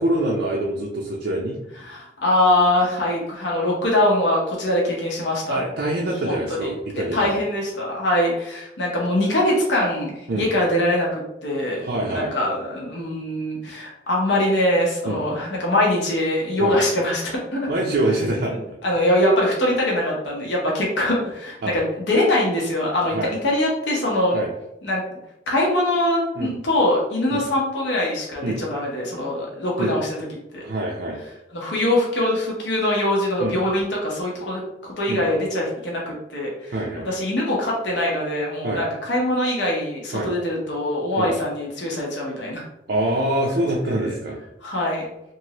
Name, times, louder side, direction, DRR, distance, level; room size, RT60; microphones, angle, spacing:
voice 1, 0.0-1.6 5.5-7.4 10.3-10.5 11.8-12.3 15.1-15.2 16.6-16.8 17.7-18.6 21.6-21.7 23.1-23.3 24.3-24.5 26.4-26.5 27.3-27.5 28.4-28.6 29.8-29.9 30.6-31.2 33.4-33.6 35.1-35.2 36.7-37.1 38.6-38.8 40.1-40.3 41.2-41.3 42.9-44.4, right 1 dB, 60° right, -3 dB, 0.5 m, -25 dB
voice 2, 1.8-5.6 6.0-6.7 7.1-17.7 18.5-24.4 24.8-25.0 25.5-30.2 30.5-30.6 31.5-34.6 35.0-36.8 37.0-42.6 44.0-44.2 44.6-45.0, left 1 dB, 80° left, -3 dB, 0.8 m, -23 dB
3.0 x 2.6 x 2.8 m, 0.87 s
head